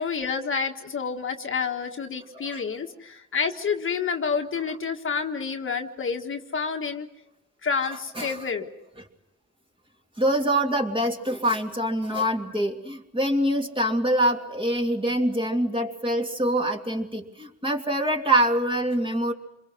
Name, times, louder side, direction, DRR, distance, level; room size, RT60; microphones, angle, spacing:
voice 1, 0.0-7.1 7.6-8.7, left 5 dB, 40° left, 4 dB, 1.6 m, -29 dB
voice 2, 10.2-19.3, right 1 dB, 15° right, 2 dB, 2.8 m, -25 dB
27.5 x 22.0 x 6.2 m, 0.91 s
cardioid pair, 90°, 30 cm